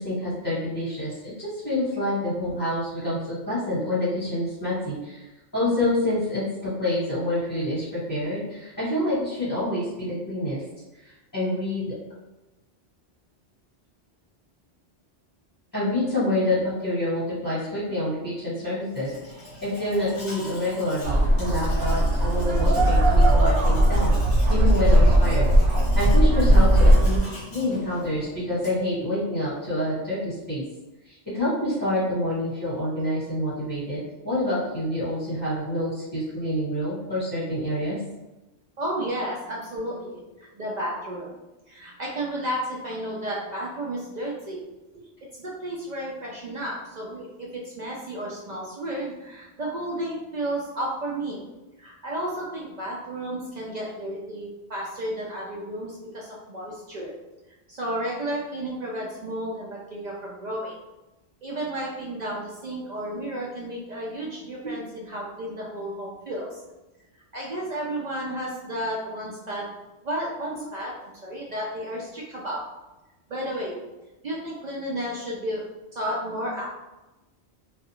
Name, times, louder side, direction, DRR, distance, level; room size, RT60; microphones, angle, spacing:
voice 1, 0.0-10.6 10.9-11.9 15.7-19.1 19.6-24.1 24.5-27.2 27.5-30.6 31.0-38.0 63.1-63.2, left 1 dB, 15° left, -12 dB, 1.3 m, -27 dB
Domestic sounds home sounds, 18.8-28.9, equal, 40° left, 1.0 m, -42 dB
sound 1, 21.0-27.2, right 1 dB, 90° right, 0.9 m, -18 dB
voice 2, 38.8-41.4 41.7-44.6 45.4-51.4 51.8-57.1 57.7-60.8 61.4-66.6 67.3-69.7 70.0-72.6 73.3-73.8 74.2-75.6 75.9-76.7, right 1 dB, 60° right, -4 dB, 0.4 m, -32 dB
2.4 x 2.3 x 2.8 m, 1.0 s
omnidirectional pair, 1.2 m